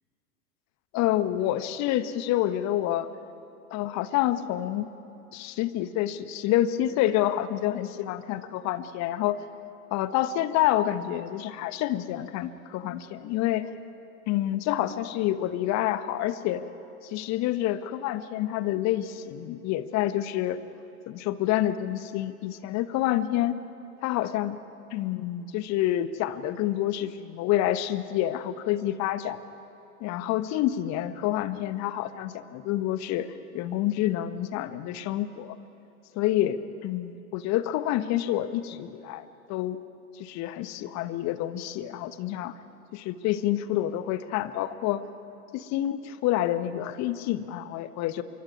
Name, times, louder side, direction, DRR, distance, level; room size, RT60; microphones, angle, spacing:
voice 1, 0.9-3.1 3.7-4.9 5.3-9.4 9.9-13.7 14.3-16.6 17.0-20.6 21.1-23.6 24.0-24.6 24.9-29.4 30.0-35.6 36.1-39.8 40.1-42.5 42.9-45.0 45.5-48.2, left 13 dB, 35° left, 13 dB, 1.3 m, -28 dB
26.5 x 23.5 x 9.5 m, 2.9 s
figure-of-eight pair, 95°, 45 cm